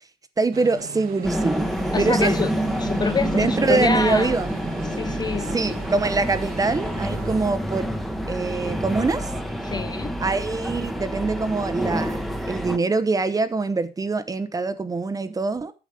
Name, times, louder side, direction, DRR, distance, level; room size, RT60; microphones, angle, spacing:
voice 1, 0.4-1.7 2.0-2.3 3.3-4.5 5.4-7.9 8.3-9.3 10.2-12.2 12.5-15.7, right 3 dB, 20° right, 0.9 m, -24 dB
sound 1, 0.5-7.5, right 7 dB, 60° right, 1.4 m, -38 dB
sound 2, 1.2-12.8, equal, ahead, 1.1 m, -28 dB
voice 2, 1.9-2.5 2.8-4.3 5.0-5.5 9.6-10.1, left 4 dB, 25° left, 0.6 m, -26 dB
8.7 x 7.2 x 5.0 m
cardioid pair, 110°, 17 cm